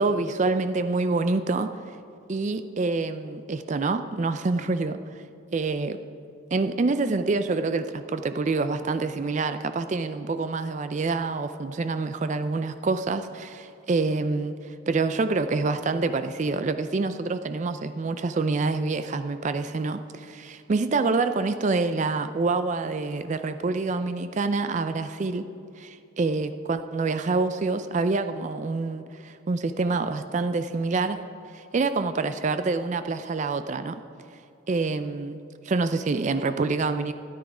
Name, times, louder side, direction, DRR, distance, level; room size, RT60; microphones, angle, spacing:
voice 1, 0.0-1.7 2.3-5.0 5.5-6.0 6.5-25.5 25.8-31.2 31.5-34.0 34.7-35.4 35.6-37.1, right 3 dB, 35° right, 10 dB, 0.3 m, -26 dB
13.5 x 9.4 x 4.9 m, 2.5 s
head